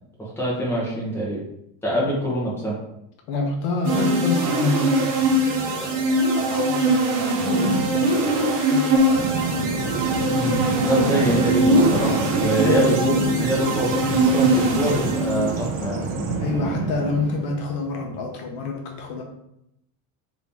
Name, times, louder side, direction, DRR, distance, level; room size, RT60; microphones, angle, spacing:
voice 1, 0.2-1.4 1.8-2.8 10.2-16.1, right 1 dB, 5° left, -6 dB, 0.7 m, -24 dB
voice 2, 3.3-9.2 12.6-12.9 16.4-19.2, left 3 dB, 55° left, 2 dB, 0.6 m, -28 dB
sound 1, 3.8-15.6, right 1 dB, 70° right, 0.9 m, -21 dB
Bird vocalization bird call bird song, 9.1-17.5, right 3 dB, 40° right, 0.4 m, -28 dB
2.9 x 2.7 x 3.3 m, 0.81 s
cardioid pair, 165°, 46 cm